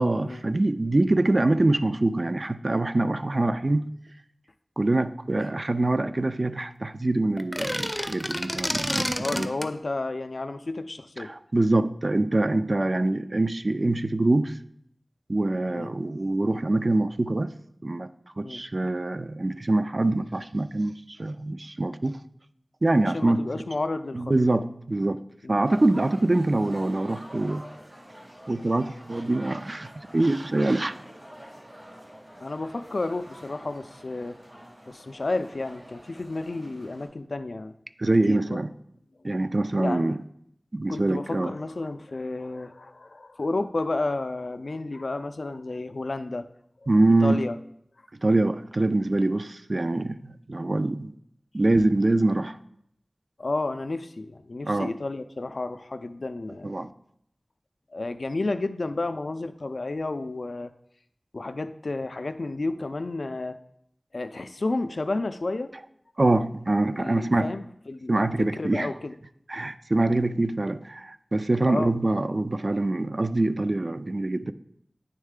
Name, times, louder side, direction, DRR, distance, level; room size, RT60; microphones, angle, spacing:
voice 1, 0.0-3.9 4.8-9.5 11.2-14.6 15.3-17.5 17.8-18.1 18.4-20.9 21.2-22.2 22.8-23.5 24.1-25.2 25.5-27.7 28.5-30.9 38.0-38.7 39.2-40.2 40.7-41.5 46.9-47.5 48.2-51.1 51.5-52.6 54.6-54.9 56.6-56.9 66.2-67.5 68.1-68.9 69.5-74.5, right 2 dB, 55° right, 0.3 m, -24 dB
sound 1, 7.4-9.7, equal, 10° left, 0.5 m, -29 dB
voice 2, 9.2-11.3 15.7-15.9 18.4-18.6 23.1-24.3 25.4-25.6 32.4-34.4 34.9-37.7 38.3-38.6 39.8-40.2 40.9-46.4 47.2-47.5 53.4-56.7 57.9-60.7 61.3-63.6 64.1-65.7 67.0-69.1 71.7-71.9, left 2 dB, 85° left, 0.3 m, -31 dB
sound 2, 25.6-37.1, equal, 80° right, 2.3 m, -47 dB
9.4 x 3.2 x 3.6 m
wide cardioid pair, 50°, 0 cm